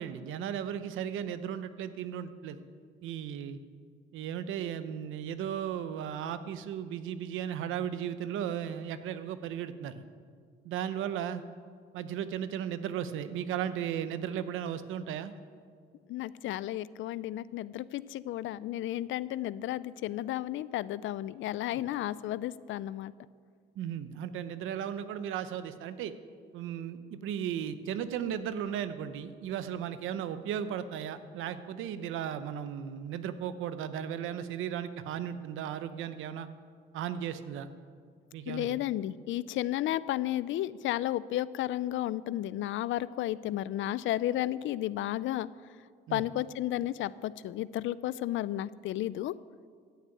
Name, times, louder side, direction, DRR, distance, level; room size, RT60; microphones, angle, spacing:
voice 1, 0.0-2.6 3.0-3.6 4.1-10.0 10.6-11.4 11.9-15.3 23.8-26.1 26.5-36.5 36.9-37.7 38.3-38.8 46.1-46.2, right 9 dB, 90° right, 12 dB, 0.8 m, -36 dB
voice 2, 16.1-23.1 38.5-45.5 46.1-49.3, left 13 dB, 80° left, 18 dB, 0.5 m, -33 dB
14.5 x 7.3 x 9.0 m, 2.1 s
cardioid pair, 90°, 20 cm